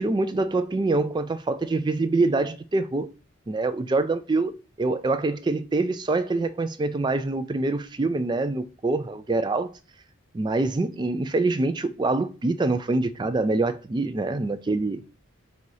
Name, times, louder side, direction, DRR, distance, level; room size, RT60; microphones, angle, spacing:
voice 1, 0.0-3.1 3.5-4.5 4.8-9.7 10.3-15.0, right 3 dB, 20° right, 0.3 m, -25 dB
4.1 x 2.8 x 4.7 m
head